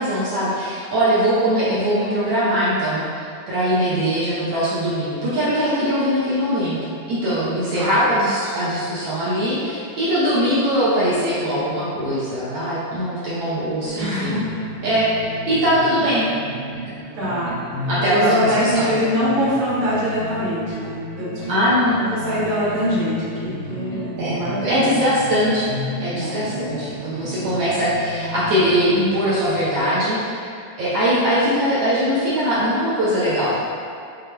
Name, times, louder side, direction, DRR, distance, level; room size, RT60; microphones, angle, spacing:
voice 1, 0.0-6.8 7.1-14.4 14.8-16.3 17.9-18.9 21.5-22.0 24.2-25.7 26.0-30.5 30.8-33.6, equal, 75° right, -10 dB, 1.4 m, -21 dB
voice 2, 7.7-8.1 13.9-14.6 16.1-16.3 17.1-24.9 26.2-26.5, equal, 60° right, -10 dB, 2.7 m, -24 dB
sound 1, 13.9-29.8, equal, 90° left, 2.4 m, -33 dB
6.5 x 3.7 x 2.2 m, 2.4 s
omnidirectional pair, 3.8 m